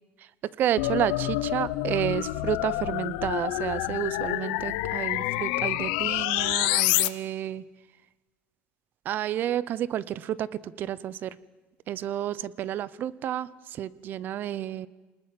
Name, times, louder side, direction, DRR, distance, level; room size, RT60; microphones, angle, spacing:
voice 1, 0.6-7.6 9.0-11.4 11.9-14.9, right 11 dB, 45° right, 19 dB, 0.8 m, -30 dB
sound 1, 0.8-7.1, left 18 dB, 90° left, 0.8 m, -27 dB
28.0 x 20.0 x 7.7 m, 1.3 s
cardioid pair, 140°, 5 cm